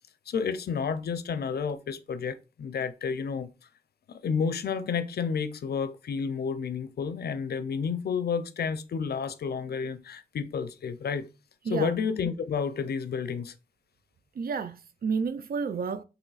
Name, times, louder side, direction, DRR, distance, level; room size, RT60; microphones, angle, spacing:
voice 1, 0.3-3.5 4.1-11.3 11.7-13.5, left 6 dB, 90° left, 0.4 m, -31 dB
voice 2, 11.6-12.0 14.4-16.0, right 5 dB, 70° right, 0.4 m, -31 dB
3.1 x 3.0 x 3.9 m
cardioid pair, 55°, 16 cm